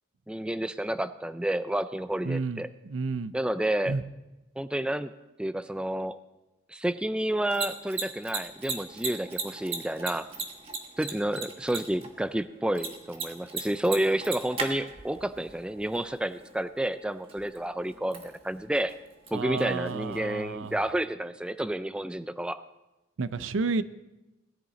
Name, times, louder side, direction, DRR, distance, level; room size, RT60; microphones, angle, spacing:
voice 1, 0.3-2.7 3.3-4.0 4.6-5.1 5.4-6.2 6.7-10.3 11.0-18.9 19.3-22.6, right 1 dB, 5° right, 12 dB, 0.3 m, -30 dB
voice 2, 2.2-3.4 3.9-4.0 19.3-20.8 23.2-23.8, right 4 dB, 90° right, 14 dB, 0.5 m, -31 dB
Mechanisms, 7.3-20.9, right 4 dB, 30° right, 1.4 m, -40 dB
18.5 x 10.5 x 4.0 m, 1.0 s
head